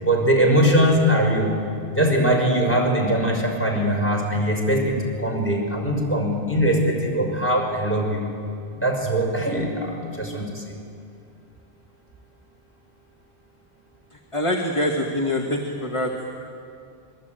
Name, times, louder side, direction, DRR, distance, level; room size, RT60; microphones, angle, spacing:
voice 1, 0.0-1.5 2.0-8.2 8.8-10.8, equal, 10° left, 1 dB, 5.6 m, -21 dB
voice 2, 14.3-16.1, left 1 dB, 30° left, 1 dB, 2.1 m, -24 dB
26.5 x 22.5 x 9.3 m, 2.4 s
omnidirectional pair, 1.1 m